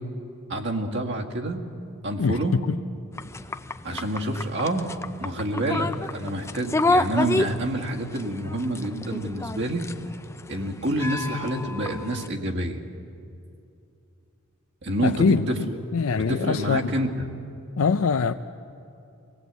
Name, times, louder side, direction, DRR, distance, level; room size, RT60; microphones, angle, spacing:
voice 1, 0.5-1.6 2.0-2.6 3.8-4.9 5.2-9.9 10.5-12.8 14.8-15.8 16.3-17.2, right 1 dB, 55° right, 1 dB, 1.9 m, -28 dB
voice 2, 2.2-2.8 15.0-16.9 17.8-18.3, left 5 dB, 85° left, 8 dB, 0.5 m, -23 dB
sound 1, 3.1-12.3, left 2 dB, 15° left, 0.5 m, -30 dB
24.0 x 18.0 x 8.2 m, 2.6 s
head